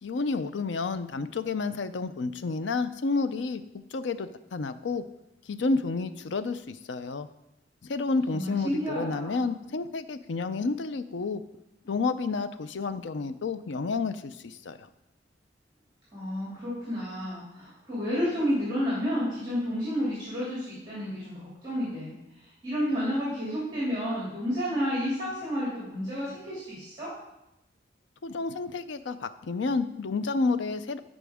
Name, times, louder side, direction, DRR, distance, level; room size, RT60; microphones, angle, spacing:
voice 1, 0.0-3.6 3.9-5.0 5.5-7.3 7.8-11.4 11.9-14.8 28.2-31.0, left 4 dB, 80° left, 12 dB, 0.5 m, -30 dB
voice 2, 8.3-9.4 16.1-22.2 22.6-27.1, equal, 25° right, -8 dB, 2.5 m, -31 dB
12.0 x 5.1 x 3.5 m, 0.89 s
head